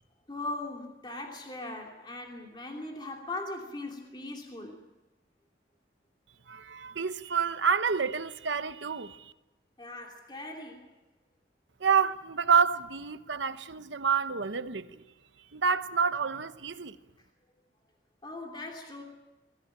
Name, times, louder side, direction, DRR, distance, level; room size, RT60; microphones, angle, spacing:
voice 1, 0.3-4.8 9.8-10.9 18.2-19.0, left 2 dB, 25° left, 2.9 m, -39 dB
voice 2, 6.5-9.3 11.8-15.0 15.5-17.0, right 6 dB, 85° right, 1.0 m, -28 dB
22.5 x 16.5 x 9.0 m
head